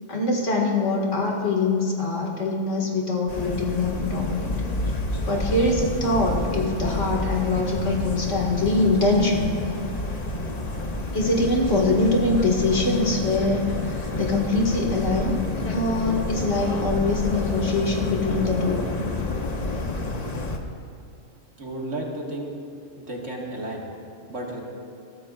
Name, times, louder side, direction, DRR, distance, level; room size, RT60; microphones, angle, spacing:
voice 1, 0.1-4.5 5.2-9.5 11.1-15.4 15.7-18.8, left 2 dB, 65° left, -1 dB, 2.3 m, -23 dB
sound 1, 3.3-20.6, left 2 dB, 35° left, 1.0 m, -29 dB
voice 2, 21.6-22.5 22.9-23.8 24.3-24.6, right 1 dB, 65° right, -2 dB, 2.3 m, -32 dB
22.0 x 13.5 x 2.5 m, 2.6 s
omnidirectional pair, 1.3 m